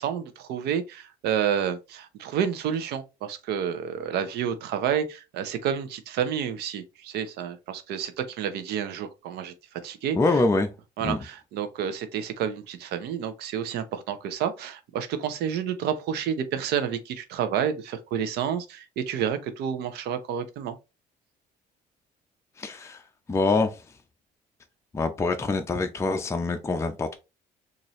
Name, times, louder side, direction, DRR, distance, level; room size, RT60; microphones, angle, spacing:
voice 1, 0.0-9.5 9.8-10.2 11.0-20.7, right 8 dB, 80° right, 0.7 m, -29 dB
voice 2, 10.1-10.7 11.0-11.2 22.6-23.0 23.3-23.8 24.9-27.1, left 3 dB, 15° left, 0.5 m, -25 dB
4.1 x 2.6 x 3.0 m
cardioid pair, 110°, 17 cm